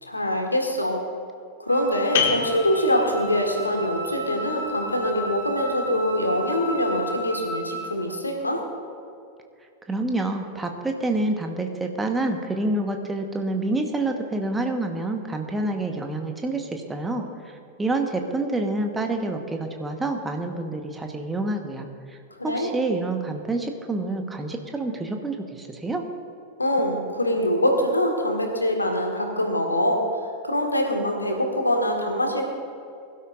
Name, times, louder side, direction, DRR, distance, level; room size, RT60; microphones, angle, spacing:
voice 1, 0.0-1.0 1.6-8.6 22.4-22.7 26.6-30.0 30.4-32.5, equal, 85° left, 2 dB, 1.8 m, -24 dB
Wind instrument woodwind instrument, 1.7-7.9, right 1 dB, 65° right, 3.6 m, -34 dB
sound 1, 2.1-7.5, left 7 dB, 55° left, 1.6 m, -33 dB
voice 2, 9.9-17.3 17.8-22.2 22.4-26.0, right 2 dB, 10° right, 4 dB, 1.3 m, -27 dB
22.5 x 12.5 x 2.6 m, 2.4 s
figure-of-eight pair, 90°, 0 cm